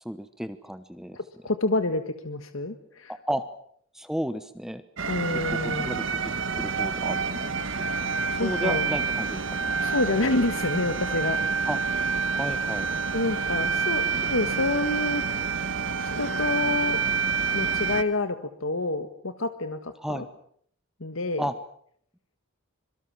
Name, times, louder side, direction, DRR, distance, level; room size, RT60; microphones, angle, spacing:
voice 1, 0.0-1.2 3.1-3.5 3.9-4.8 5.3-7.5 7.8-7.9 8.3-9.7 11.7-11.8 12.3-12.9 20.0-20.3 21.4-21.5, equal, ahead, 11 dB, 1.0 m, -33 dB
voice 2, 1.1-3.1 5.1-6.0 8.1-8.9 9.8-11.7 13.1-15.2 16.0-17.0 17.5-20.3 21.0-21.5, left 2 dB, 70° left, 9 dB, 1.6 m, -28 dB
sound 1, 5.0-18.0, right 5 dB, 65° right, 1.6 m, -28 dB
25.5 x 23.0 x 7.3 m, 0.63 s
head